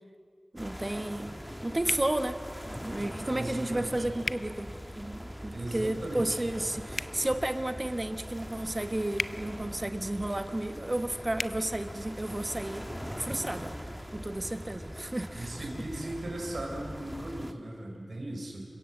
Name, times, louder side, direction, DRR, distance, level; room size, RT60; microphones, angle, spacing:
voice 1, 0.5-2.4 2.7-12.9 13.2-13.7 14.1-15.7, right 1 dB, 25° right, 9 dB, 1.2 m, -32 dB
sound 1, 0.6-17.5, equal, ahead, 1.3 m, -42 dB
sound 2, 1.9-2.1 4.2-4.4 6.9-7.2 9.1-9.4 11.3-11.5, left 3 dB, 55° left, 0.5 m, -33 dB
voice 2, 3.3-4.1 5.5-6.4 15.3-18.6, right 1 dB, 60° right, 0 dB, 4.6 m, -38 dB
27.5 x 16.0 x 7.4 m, 2.4 s
wide cardioid pair, 75°, 0 cm